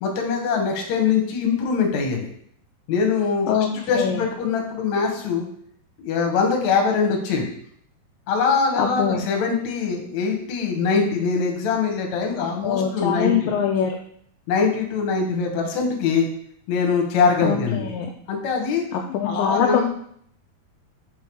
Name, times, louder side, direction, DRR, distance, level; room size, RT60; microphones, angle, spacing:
voice 1, 0.0-2.3 2.9-5.5 6.0-7.5 8.3-13.5 14.5-16.3 16.7-17.9 18.3-18.9 19.2-19.9, left 5 dB, 60° left, 2 dB, 2.1 m, -23 dB
voice 2, 3.9-4.2 8.8-9.2 12.4-14.0 17.4-18.1 18.9-19.9, left 7 dB, 80° left, 1 dB, 2.2 m, -23 dB
5.8 x 5.1 x 4.6 m, 0.65 s
omnidirectional pair, 4.3 m